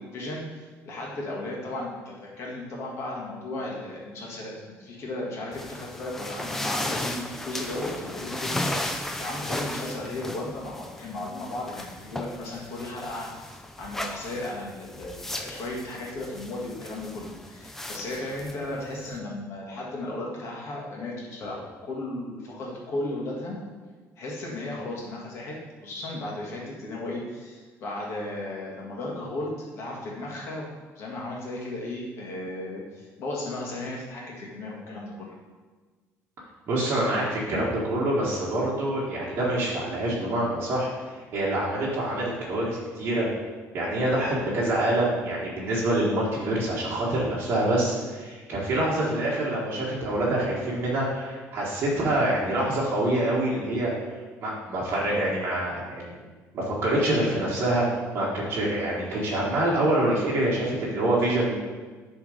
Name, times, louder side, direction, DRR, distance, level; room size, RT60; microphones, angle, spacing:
voice 1, 0.0-23.6 24.2-25.6 25.8-35.3, left 2 dB, 50° left, -3 dB, 1.7 m, -35 dB
sound 1, 5.5-19.2, left 1 dB, 5° left, 0.4 m, -36 dB
voice 2, 36.7-40.9 41.3-43.3 43.7-53.9 54.4-56.2 56.5-57.9 58.1-61.6, right 1 dB, 40° right, -6 dB, 1.4 m, -26 dB
7.0 x 3.6 x 5.0 m, 1.4 s
cardioid pair, 165°, 6 cm